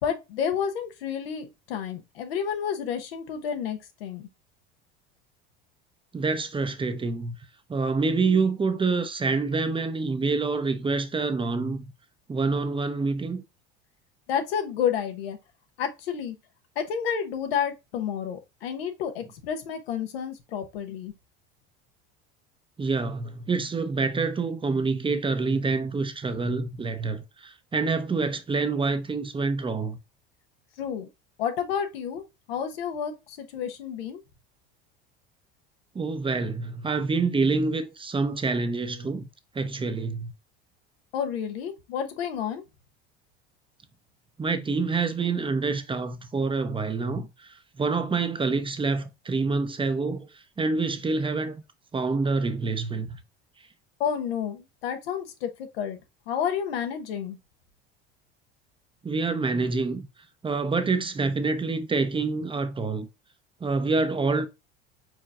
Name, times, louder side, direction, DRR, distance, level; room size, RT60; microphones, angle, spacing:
voice 1, 0.0-4.3 14.3-15.4 15.8-16.4 16.8-21.1 30.8-31.1 31.4-32.2 32.5-34.2 41.1-42.6 54.0-56.0 56.3-57.4, left 8 dB, 85° left, 1.0 m, -30 dB
voice 2, 6.1-7.3 7.7-11.9 12.3-13.4 22.8-30.0 35.9-39.3 39.5-40.3 44.4-50.3 50.6-51.6 51.9-53.2 59.0-60.1 60.4-63.1 63.6-64.5, right 4 dB, 15° right, 0.6 m, -27 dB
4.7 x 4.3 x 2.4 m
hypercardioid pair, 90°, 30 cm